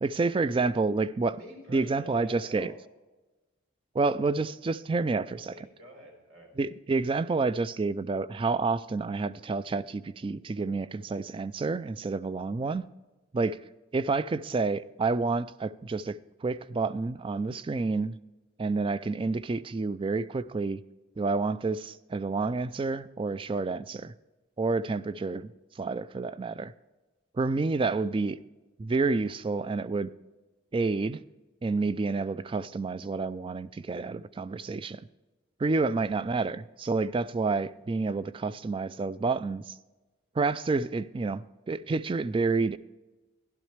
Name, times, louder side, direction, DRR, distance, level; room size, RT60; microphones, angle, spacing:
voice 1, 0.0-1.4 1.7-2.7 3.9-5.5 6.6-12.8 13.3-13.6 13.9-18.2 18.6-20.8 21.2-24.1 24.6-26.7 27.3-28.4 28.8-30.1 30.7-31.2 31.6-35.0 35.6-39.8 40.4-42.8, right 3 dB, 25° right, 0.3 m, -29 dB
voice 2, 1.3-2.8 5.3-6.5 12.5-12.6, equal, 80° right, 3.9 m, -48 dB
12.5 x 11.5 x 3.2 m
head